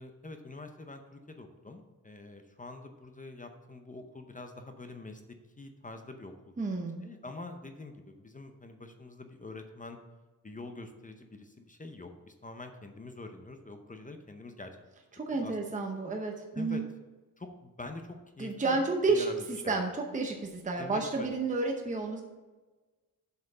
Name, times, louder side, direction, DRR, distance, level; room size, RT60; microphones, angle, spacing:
voice 1, 0.0-5.2 5.6-6.5 7.0-10.0 10.4-14.8 15.3-15.6 16.5-16.8 17.4-18.8 19.1-19.8 20.8-21.3, left 2 dB, 20° left, 6 dB, 0.7 m, -45 dB
voice 2, 6.6-7.0 15.1-16.8 18.4-22.2, right 3 dB, 20° right, 2 dB, 0.8 m, -31 dB
7.7 x 5.7 x 5.5 m, 1.2 s
wide cardioid pair, 165°, 37 cm